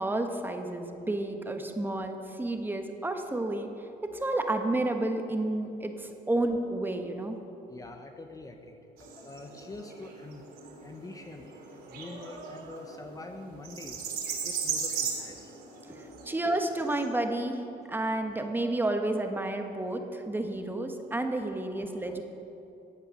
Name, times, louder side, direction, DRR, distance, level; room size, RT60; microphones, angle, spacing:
voice 1, 0.0-3.7 4.0-7.4 15.9-17.6 17.9-22.2, right 2 dB, 10° right, 5 dB, 1.2 m, -31 dB
voice 2, 7.7-10.4 10.8-11.6 11.9-14.1 14.4-15.5 21.7-22.2, left 2 dB, 20° left, 5 dB, 1.0 m, -45 dB
sound 1, 9.0-17.0, right 6 dB, 70° right, 3.2 m, -37 dB
15.5 x 9.0 x 6.5 m, 2.8 s
cardioid pair, 110°, 17 cm